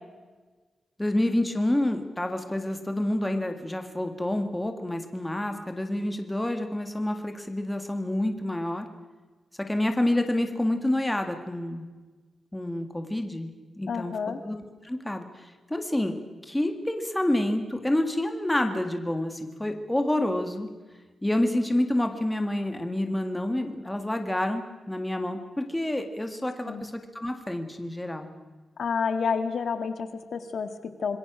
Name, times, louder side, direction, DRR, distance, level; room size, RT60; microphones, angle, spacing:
voice 1, 1.0-8.9 9.6-11.9 12.5-14.1 14.4-20.7 21.2-28.3, left 1 dB, 10° left, 5 dB, 1.9 m, -28 dB
voice 2, 13.9-14.4 26.6-26.8 28.8-31.2, left 6 dB, 65° left, 9 dB, 1.7 m, -29 dB
26.5 x 21.0 x 6.2 m, 1.3 s
wide cardioid pair, 160°, 0 cm